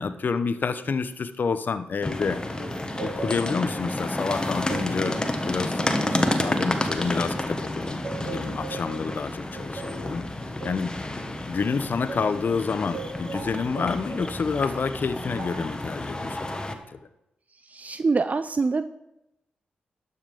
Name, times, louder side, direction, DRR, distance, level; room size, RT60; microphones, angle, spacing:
voice 1, 0.0-2.4 3.0-5.2 5.4-10.3 10.6-10.9 11.5-17.0, left 5 dB, 55° left, 12 dB, 0.7 m, -29 dB
sound 1, 2.0-16.7, left 1 dB, 20° left, 1.3 m, -30 dB
sound 2, 2.6-7.6 8.0-12.4 12.9-14.4 15.4-15.8, right 5 dB, 60° right, 1.6 m, -40 dB
voice 2, 17.5-18.9, right 4 dB, 40° right, 11 dB, 0.4 m, -25 dB
12.0 x 5.7 x 5.1 m, 0.87 s
supercardioid pair, 45°, 4 cm